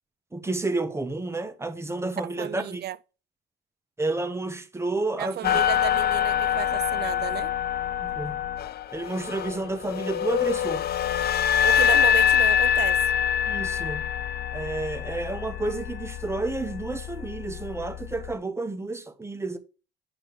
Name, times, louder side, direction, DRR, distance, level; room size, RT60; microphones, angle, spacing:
voice 1, 0.3-2.8 4.0-5.6 8.0-8.4 8.9-10.9 13.4-14.0 14.5-19.6, right 2 dB, 15° right, 1.2 m, -30 dB
voice 2, 2.4-3.0 5.2-7.5 11.6-13.0, right 11 dB, 60° right, 0.5 m, -33 dB
sound 1, 5.4-18.3, left 9 dB, 55° left, 0.5 m, -25 dB
8.9 x 3.1 x 6.3 m
cardioid pair, 80°, 19 cm